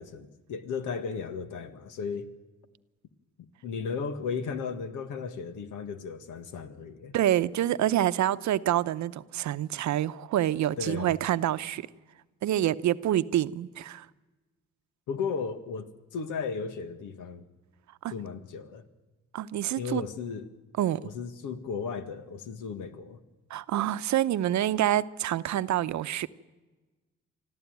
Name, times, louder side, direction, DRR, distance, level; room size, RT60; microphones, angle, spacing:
voice 1, 0.0-2.3 3.4-7.2 10.8-11.2 15.1-17.4 18.1-18.8 19.8-20.5 21.0-23.2, left 5 dB, 85° left, 1.8 m, -35 dB
voice 2, 7.1-11.9 12.4-14.1 18.0-18.1 19.3-20.0 20.8-21.1 23.5-26.3, right 12 dB, 70° right, 0.8 m, -27 dB
25.0 x 14.0 x 9.3 m
cardioid pair, 90°, 30 cm